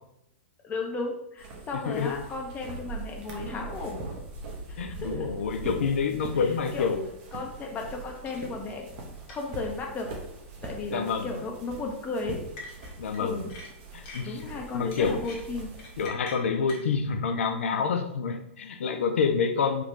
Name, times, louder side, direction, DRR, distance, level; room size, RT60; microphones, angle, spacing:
voice 1, 0.6-4.0 4.7-5.3 6.3-6.9 7.3-8.9 9.3-10.1 10.6-12.5 13.1-13.5 14.2-15.7, left 3 dB, 25° left, 1 dB, 0.6 m, -35 dB
sound 1, 1.4-16.1, right 3 dB, 45° right, 0.8 m, -41 dB
voice 2, 1.7-2.2 4.8-7.1 10.9-11.3 13.0-13.5 13.9-14.4 14.7-15.2 16.0-19.8, left 5 dB, 70° left, 8 dB, 0.4 m, -28 dB
sound 2, 8.3-8.4 8.7-8.8 9.3-9.4 10.6-10.9 12.6-13.2 13.5-14.4 14.9-16.9, left 2 dB, 45° left, 1.2 m, -43 dB
3.6 x 2.3 x 3.0 m, 0.81 s
figure-of-eight pair, 105°, 7 cm